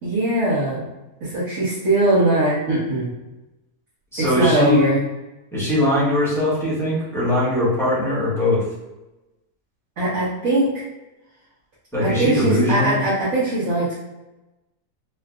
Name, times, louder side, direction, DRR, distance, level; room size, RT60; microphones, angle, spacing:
voice 1, 0.0-0.8 1.2-3.1 4.4-5.0 10.0-10.8 12.0-13.9, right 2 dB, 60° right, -10 dB, 1.4 m, -20 dB
voice 2, 4.1-4.9 5.5-8.6 11.9-12.9, left 1 dB, ahead, -10 dB, 1.0 m, -20 dB
3.8 x 2.4 x 2.3 m, 1.0 s
omnidirectional pair, 1.7 m